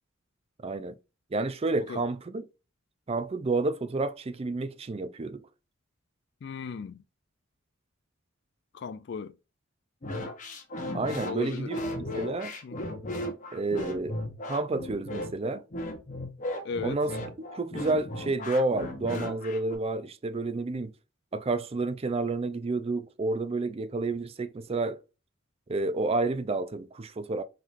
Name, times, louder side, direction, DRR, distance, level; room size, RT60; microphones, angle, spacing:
voice 1, 0.6-1.0 1.3-2.5 3.1-5.4 10.9-12.5 13.5-14.2 14.5-15.6 16.8-17.1 17.5-20.9 21.3-25.0 25.7-27.4, right 3 dB, 30° right, 0.4 m, -30 dB
voice 2, 6.4-7.0 8.7-9.3 11.2-11.7 12.6-12.9 16.6-17.0, left 5 dB, 55° left, 0.4 m, -36 dB
sound 1, 10.0-19.7, left 1 dB, 40° left, 1.0 m, -36 dB
4.7 x 3.8 x 2.6 m
head